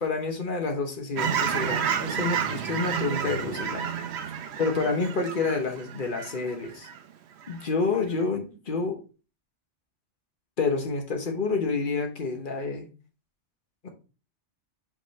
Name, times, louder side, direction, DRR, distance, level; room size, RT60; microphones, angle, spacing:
voice 1, 0.0-4.3 4.6-6.9 7.5-9.0 10.6-12.9 13.8-13.9, left 4 dB, 45° left, 4 dB, 1.3 m, -29 dB
Fowl / Chirp tweet, 1.2-7.0 7.4-7.6, right 8 dB, 65° right, 0.9 m, -30 dB
5.4 x 5.3 x 3.3 m, 0.34 s
omnidirectional pair, 1.3 m